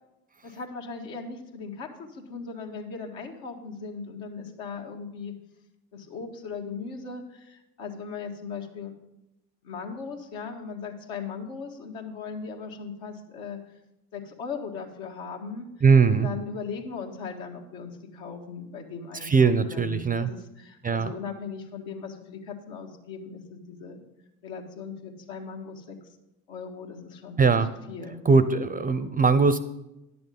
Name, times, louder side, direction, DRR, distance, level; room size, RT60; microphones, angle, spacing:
voice 1, 0.4-5.3 5.9-8.9 9.6-13.6 14.1-15.7 16.2-24.0 24.4-26.0 26.5-27.4 27.9-28.2, left 5 dB, 75° left, 2 dB, 1.6 m, -38 dB
voice 2, 15.8-16.3 19.2-20.3 20.8-21.1 27.4-27.7 28.3-29.6, right 5 dB, 20° right, 14 dB, 0.5 m, -20 dB
10.5 x 6.9 x 5.4 m, 0.92 s
hypercardioid pair, 70°, 43 cm